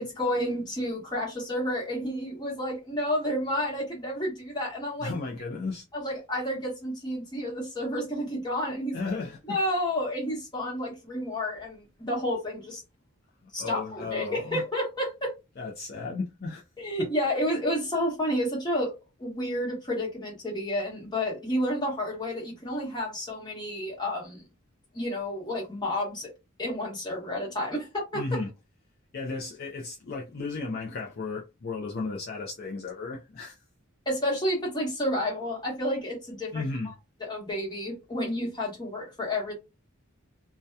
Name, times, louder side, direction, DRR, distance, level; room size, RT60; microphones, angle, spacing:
voice 1, 0.0-5.1 5.9-9.2 9.5-12.8 13.5-15.3 16.8-18.9 19.2-24.4 24.9-26.3 26.6-28.4 34.1-36.6 37.2-39.5, left 1 dB, 20° left, 1.1 m, -30 dB
voice 2, 5.0-5.9 8.9-9.6 13.6-14.6 15.6-16.6 17.0-17.1 28.1-28.5 29.1-33.6 36.5-36.9, left 3 dB, 45° left, 0.4 m, -34 dB
2.7 x 2.2 x 2.2 m
head